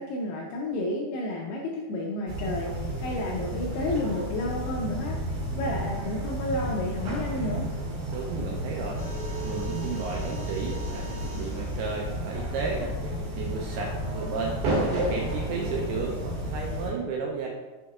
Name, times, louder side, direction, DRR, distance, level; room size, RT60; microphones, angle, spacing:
voice 1, 0.0-5.2 5.6-7.7, left 1 dB, 85° left, -1 dB, 2.3 m, -31 dB
sound 1, 2.3-16.9, equal, 55° right, 2.5 m, -32 dB
voice 2, 8.1-9.0 9.4-17.5, right 4 dB, 80° right, -1 dB, 2.3 m, -33 dB
sound 2, 9.0-13.5 14.6-16.0, right 3 dB, 55° left, 1.3 m, -47 dB
6.4 x 6.2 x 2.4 m, 1.2 s
omnidirectional pair, 5.1 m